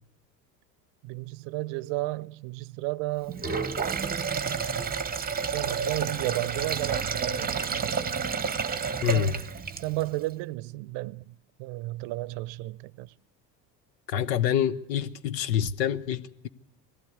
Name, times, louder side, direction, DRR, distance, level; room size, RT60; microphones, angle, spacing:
voice 1, 1.0-3.4 5.3-8.2 9.1-9.5 9.8-13.1, right 20 dB, 60° right, 0.7 m, -33 dB
Sink (filling or washing), 3.3-10.1, right 6 dB, 20° right, 0.9 m, -30 dB
voice 2, 9.0-9.4 14.1-16.5, left 9 dB, 80° left, 0.9 m, -26 dB
20.0 x 14.5 x 9.4 m
hypercardioid pair, 75°, 49 cm